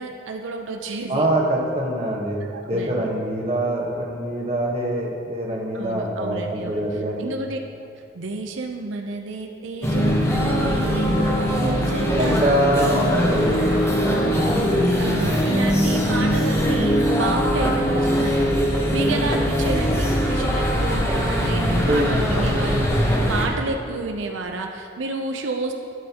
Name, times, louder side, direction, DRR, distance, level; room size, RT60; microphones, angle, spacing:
voice 1, 0.0-1.3 2.5-3.1 5.7-7.9 8.1-12.6 12.8-13.7 15.0-25.7, right 3 dB, 90° right, 3 dB, 0.6 m, -30 dB
voice 2, 1.1-7.3 12.1-13.8 14.0-14.5 21.8-22.1, right 1 dB, 35° right, -2 dB, 1.2 m, -24 dB
sound 1, 9.8-23.5, equal, 15° left, 0.9 m, -21 dB
12.5 x 7.7 x 2.9 m, 2.5 s
head